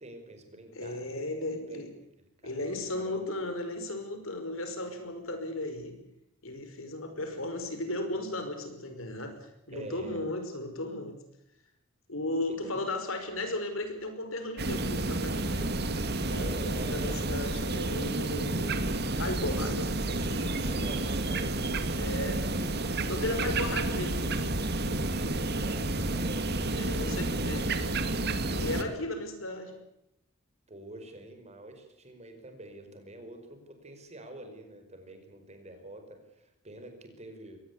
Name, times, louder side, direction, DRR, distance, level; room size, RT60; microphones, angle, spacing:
voice 1, 0.0-1.8 2.2-3.3 9.7-10.2 12.6-12.8 16.4-17.2 20.6-21.7 23.2-23.8 25.3-27.9 30.7-37.6, right 1 dB, 30° right, 6 dB, 5.1 m, -46 dB
voice 2, 0.8-1.9 2.4-6.0 6.4-9.4 9.7-11.2 12.1-15.7 16.2-18.8 19.2-20.9 22.0-22.4 23.0-24.3 26.8-27.7 28.5-29.7, left 2 dB, 75° left, 7 dB, 5.4 m, -35 dB
sound 1, 14.6-28.8, right 2 dB, 50° right, 2.1 m, -30 dB
23.0 x 19.5 x 8.4 m, 0.81 s
head